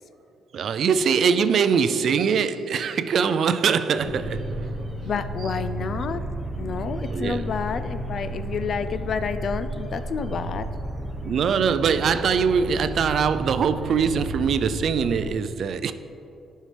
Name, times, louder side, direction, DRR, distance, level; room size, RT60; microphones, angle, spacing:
voice 1, 0.5-4.8 7.1-7.5 11.2-15.9, right 6 dB, 60° right, 0.4 m, -22 dB
sound 1, 4.0-15.3, right 1 dB, ahead, 1.0 m, -33 dB
voice 2, 5.0-6.2 6.6-10.7, left 6 dB, 55° left, 0.4 m, -29 dB
11.0 x 5.5 x 3.3 m
cardioid pair, 90°, 0 cm